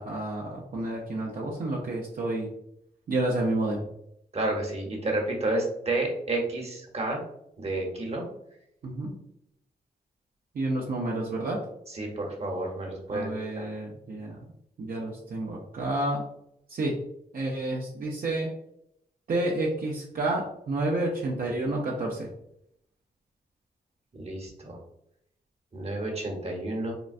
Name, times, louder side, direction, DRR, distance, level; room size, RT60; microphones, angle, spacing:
voice 1, 0.0-2.5 3.1-3.9 8.8-9.1 10.5-11.6 13.1-14.4 14.8-16.2 16.7-16.9 17.3-18.5 19.3-22.3, right 2 dB, 60° right, -3 dB, 0.6 m, -30 dB
voice 2, 4.3-7.2 7.6-8.2 11.9-13.7 24.1-24.8 25.7-26.9, right 2 dB, 40° right, 0 dB, 1.0 m, -30 dB
3.8 x 2.2 x 2.5 m, 0.76 s
cardioid pair, 65°, 17 cm